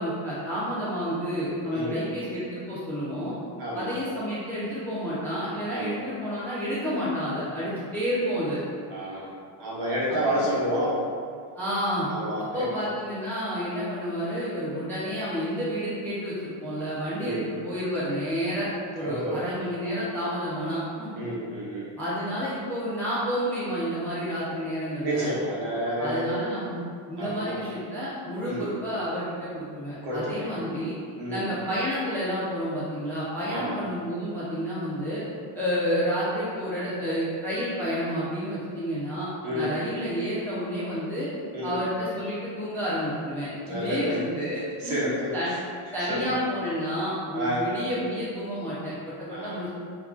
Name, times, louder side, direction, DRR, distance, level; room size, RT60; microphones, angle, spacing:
voice 1, 0.0-3.3 3.7-8.6 10.1-10.4 11.5-12.1 12.5-21.2 22.0-25.3 26.0-26.8 27.1-30.9 31.3-35.2 35.5-39.3 39.5-41.3 41.6-45.0 45.3-45.5 45.9-49.7, equal, 5° left, -10 dB, 0.4 m, -30 dB
voice 2, 8.9-9.3 9.6-11.0 12.1-12.7 17.2-17.4 19.0-19.4 21.2-21.9 25.0-26.3 27.2-27.5 28.4-28.7 30.0-30.6 31.2-31.4 33.5-33.8 39.4-39.7 41.5-41.8 43.7-44.1 44.8-45.3 46.1-46.3 47.3-47.6 49.3-49.6, equal, 60° right, -5 dB, 1.0 m, -29 dB
2.3 x 2.2 x 3.6 m, 2.2 s
cardioid pair, 130°, 46 cm